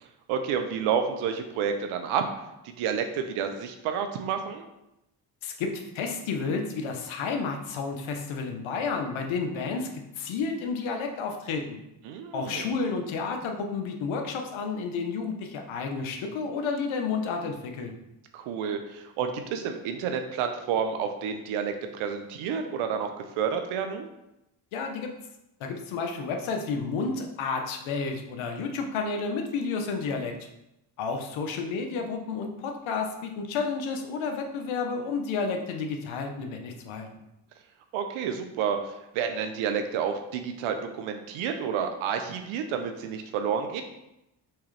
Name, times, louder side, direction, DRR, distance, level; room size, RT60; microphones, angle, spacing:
voice 1, 0.0-2.2 2.6-4.7 12.0-12.8 18.3-24.1 37.9-43.8, right 7 dB, 85° right, 6 dB, 0.6 m, -30 dB
voice 2, 5.4-11.8 12.3-17.9 24.7-25.1 25.6-30.4 31.0-37.1, left 4 dB, 75° left, 4 dB, 0.9 m, -31 dB
4.5 x 3.5 x 3.2 m, 0.89 s
supercardioid pair, 65°, 48 cm